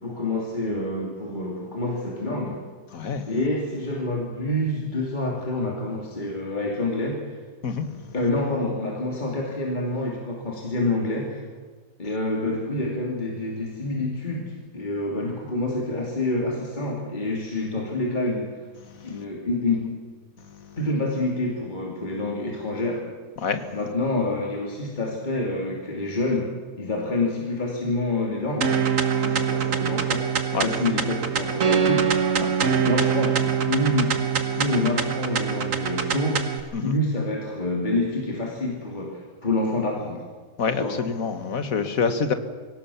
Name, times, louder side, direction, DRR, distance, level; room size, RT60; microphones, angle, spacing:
voice 1, 0.0-2.6 3.3-7.4 8.1-11.5 12.0-18.6 19.0-20.0 20.8-23.0 23.7-30.3 30.6-32.2 32.7-36.4 36.8-40.2 40.7-41.0, left 2 dB, 30° left, -1 dB, 2.8 m, -27 dB
voice 2, 2.9-3.3 7.6-7.9 23.4-23.6 29.2-29.3 30.5-30.7 36.7-36.9 40.6-42.3, left 5 dB, 70° left, 9 dB, 1.8 m, -26 dB
sound 1, 28.6-36.6, right 7 dB, 65° right, 1.8 m, -24 dB
23.5 x 17.5 x 7.1 m, 1.4 s
omnidirectional pair, 1.5 m